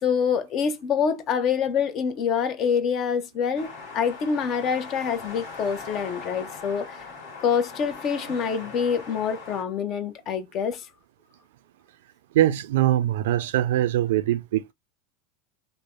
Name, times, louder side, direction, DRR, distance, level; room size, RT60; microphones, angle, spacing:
voice 1, 0.0-7.0 7.4-10.9, left 7 dB, 45° left, 0.6 m, -26 dB
sound 1, 3.5-9.6, left 4 dB, 75° left, 1.3 m, -40 dB
voice 2, 12.3-14.7, right 13 dB, 75° right, 0.4 m, -22 dB
3.2 x 2.1 x 2.4 m
hypercardioid pair, 100°, 0 cm